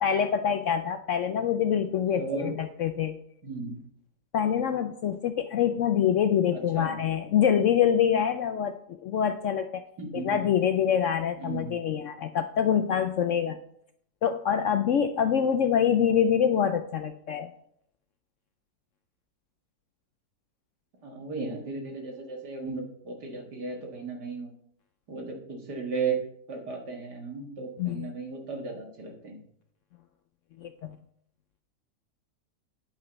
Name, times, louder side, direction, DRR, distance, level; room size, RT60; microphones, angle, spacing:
voice 1, 0.0-3.2 4.3-9.8 10.1-13.6 14.2-17.5 27.8-28.1 30.6-31.0, left 8 dB, 70° left, 8 dB, 0.7 m, -25 dB
voice 2, 2.1-2.6 3.4-3.8 6.7-7.0 10.0-10.4 11.4-11.8 21.0-24.5 25.1-26.2 26.5-29.4, right 4 dB, 80° right, 1 dB, 2.4 m, -35 dB
9.9 x 8.8 x 4.0 m, 0.69 s
omnidirectional pair, 1.8 m